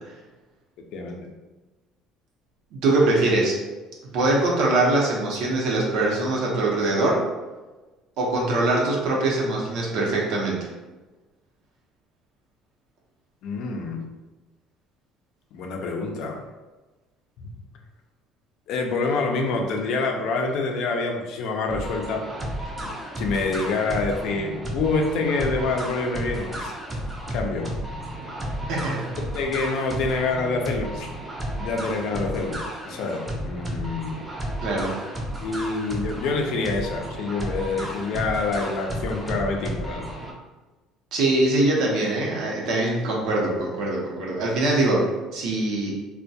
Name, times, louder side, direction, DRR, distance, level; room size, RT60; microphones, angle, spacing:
voice 1, 2.7-3.6 4.1-7.3 8.2-10.7 28.6-29.1 34.6-35.0 41.1-45.9, right 2 dB, 70° right, -3 dB, 0.7 m, -23 dB
voice 2, 13.4-14.0 15.5-16.4 17.4-17.6 18.7-22.2 23.2-26.7 27.3-27.7 29.3-31.1 31.6-34.2 35.4-40.0, left 3 dB, 65° left, 2 dB, 0.4 m, -26 dB
sound 1, 21.7-40.3, equal, 15° right, 0.5 m, -33 dB
2.2 x 2.1 x 2.7 m, 1.2 s
cardioid pair, 115°, 0 cm